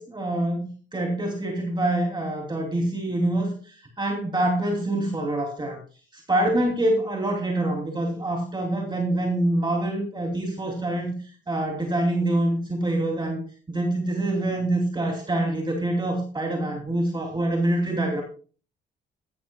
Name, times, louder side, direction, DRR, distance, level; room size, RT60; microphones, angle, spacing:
voice 1, 0.0-5.8 6.1-11.2 11.5-13.4 13.7-18.2, right 1 dB, 20° right, 1 dB, 2.8 m, -25 dB
15.5 x 13.0 x 2.3 m, 0.38 s
cardioid pair, 90°, 20 cm